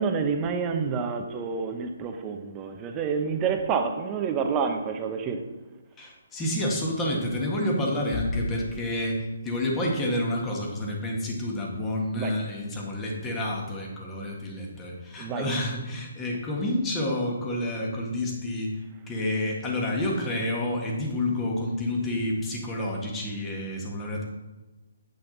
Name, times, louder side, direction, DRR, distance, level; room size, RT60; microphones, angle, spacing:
voice 1, 0.0-5.4 12.1-12.3 15.2-15.4, right 5 dB, 20° right, 0.8 m, -28 dB
voice 2, 6.0-18.8 19.1-24.2, left 1 dB, 15° left, 1.6 m, -29 dB
8.6 x 5.7 x 4.0 m
hypercardioid pair, 155°, 0 cm